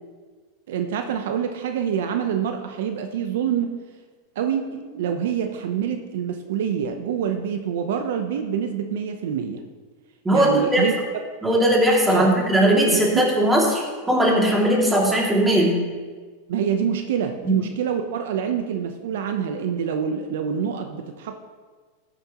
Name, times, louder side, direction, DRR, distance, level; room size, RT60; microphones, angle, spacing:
voice 1, 0.7-3.8 4.4-9.6 10.3-10.9 12.1-12.3 12.9-13.3 16.5-21.4, right 8 dB, 75° right, 6 dB, 0.7 m, -26 dB
voice 2, 10.2-10.8 11.4-15.7 17.4-17.6, right 1 dB, 10° right, -2 dB, 2.5 m, -19 dB
14.0 x 9.0 x 3.0 m, 1.5 s
supercardioid pair, 125°, 0 cm